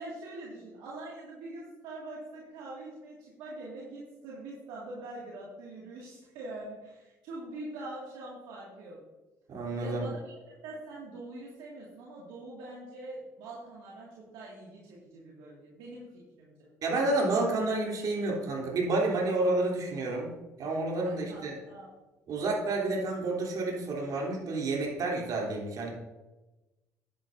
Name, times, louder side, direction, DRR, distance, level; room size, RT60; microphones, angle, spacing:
voice 1, 0.0-9.0 9.8-16.7 21.0-21.9, right 2 dB, 75° right, -5 dB, 2.1 m, -44 dB
voice 2, 9.5-10.1 16.8-20.3 20.6-21.5 22.3-25.9, right 2 dB, 60° right, -2 dB, 3.2 m, -29 dB
10.5 x 9.6 x 2.7 m, 1.1 s
hypercardioid pair, 65°, 8 cm